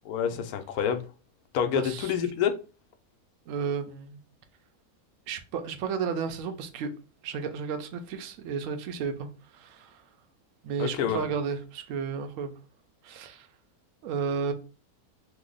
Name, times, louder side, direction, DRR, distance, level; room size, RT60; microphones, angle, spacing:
voice 1, 0.1-1.0 1.5-2.5 10.8-11.3, left 8 dB, 85° left, 1.1 m, -27 dB
voice 2, 1.7-2.1 3.5-4.2 5.3-6.9 7.2-9.3 9.5-10.0 10.6-12.5 13.0-13.5 14.0-14.5, right 6 dB, 70° right, 0.9 m, -33 dB
2.9 x 2.0 x 3.8 m
omnidirectional pair, 1.5 m